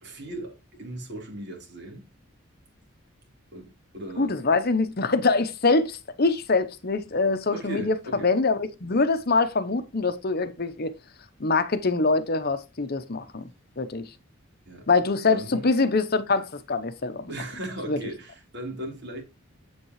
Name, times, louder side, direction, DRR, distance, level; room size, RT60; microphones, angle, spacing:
voice 1, 0.0-2.1 3.5-4.4 7.5-8.3 14.7-14.9 15.3-15.7 17.3-19.2, right 1 dB, 55° right, 3.9 m, -37 dB
voice 2, 4.2-7.9 8.2-10.9 11.4-13.5 13.8-14.1 14.9-17.2 17.9-18.0, left 3 dB, 45° left, 0.9 m, -24 dB
8.5 x 8.2 x 3.1 m
head